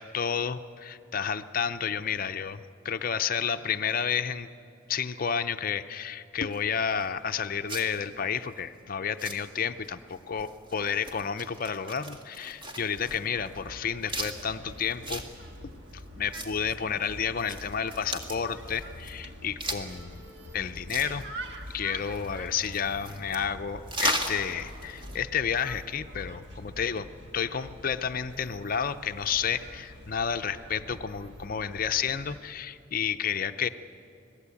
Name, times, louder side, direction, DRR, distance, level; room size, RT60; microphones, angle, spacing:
voice 1, 0.0-4.5 4.9-15.2 16.2-20.2 20.5-21.3 21.7-27.1 27.3-33.7, left 7 dB, 40° left, 9 dB, 0.5 m, -31 dB
sound 1, 6.5-25.2, right 1 dB, 25° right, 1.7 m, -39 dB
sound 2, 13.3-32.4, equal, 55° right, 1.7 m, -45 dB
25.5 x 18.0 x 8.4 m, 2.6 s
head